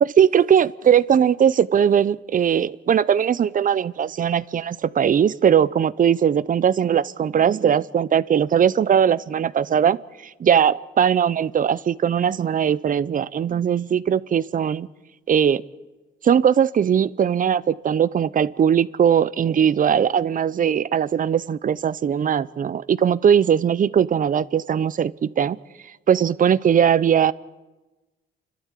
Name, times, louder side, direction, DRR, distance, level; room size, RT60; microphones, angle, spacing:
voice 1, 0.0-10.0 10.2-14.9 15.3-15.6 16.2-25.6 26.1-27.3, right 8 dB, 45° right, 19 dB, 0.6 m, -19 dB
29.5 x 12.5 x 8.3 m, 1.1 s
cardioid pair, 90°, 20 cm